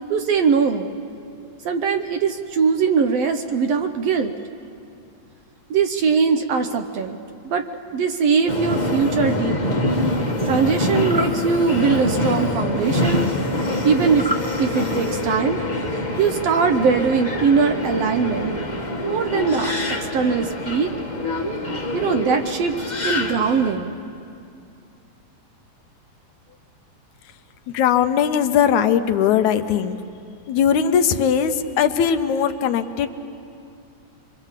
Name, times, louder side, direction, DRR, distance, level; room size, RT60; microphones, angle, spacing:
voice 1, 0.1-0.9 1.6-4.4 5.7-7.2 7.4-7.6 7.9-9.8 10.4-13.3 13.8-14.3 14.6-15.6 16.2-18.6 19.0-20.9 21.9-22.7 23.0-24.0, right 5 dB, 70° right, 7 dB, 1.7 m, -21 dB
Subway metro underground, 8.5-23.7, left 1 dB, 25° left, 0.9 m, -25 dB
sound 1, 11.0-11.3 14.1-14.5, right 1 dB, 5° right, 0.8 m, -27 dB
voice 2, 27.7-30.0 30.5-33.1, left 8 dB, 80° left, 9 dB, 2.2 m, -19 dB
25.0 x 24.0 x 7.4 m, 2.5 s
omnidirectional pair, 3.4 m